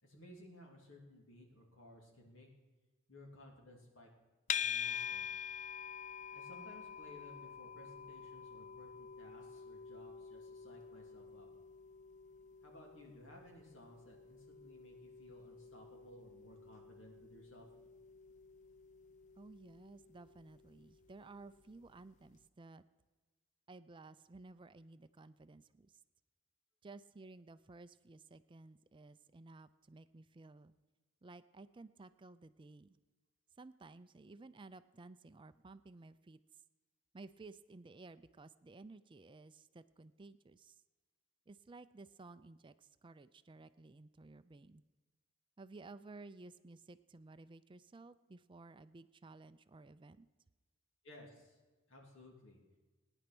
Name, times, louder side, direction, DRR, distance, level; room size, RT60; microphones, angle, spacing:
voice 1, 0.0-2.5 3.1-4.1 4.5-5.3 6.3-11.5 12.6-17.7 51.0-51.6 51.9-52.6, left 1 dB, 70° left, 0 dB, 3.0 m, -58 dB
sound 1, 4.5-21.7, left 8 dB, 35° left, 0.4 m, -47 dB
voice 2, 19.4-22.8 23.7-25.9 26.8-30.7 31.2-33.0 33.6-36.4 37.1-40.7 41.5-44.8 45.6-50.3, right 3 dB, 25° right, 13 dB, 0.4 m, -55 dB
18.0 x 10.0 x 6.1 m, 1.2 s
head